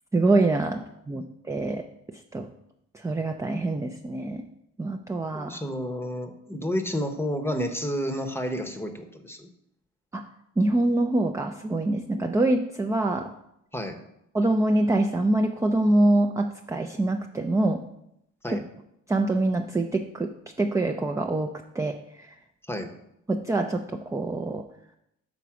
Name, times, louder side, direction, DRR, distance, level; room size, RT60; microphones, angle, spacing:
voice 1, 0.1-2.5 2.9-4.4 4.8-5.6 10.1-10.3 10.6-13.3 14.3-17.8 18.5-18.6 19.1-22.4 23.3-24.7, right 2 dB, 10° right, 5 dB, 0.4 m, -25 dB
voice 2, 5.3-9.5 13.7-14.0 18.4-18.6 22.7-22.9, equal, 10° left, 7 dB, 0.8 m, -30 dB
6.1 x 4.0 x 5.8 m, 0.79 s
cardioid pair, 90°, 30 cm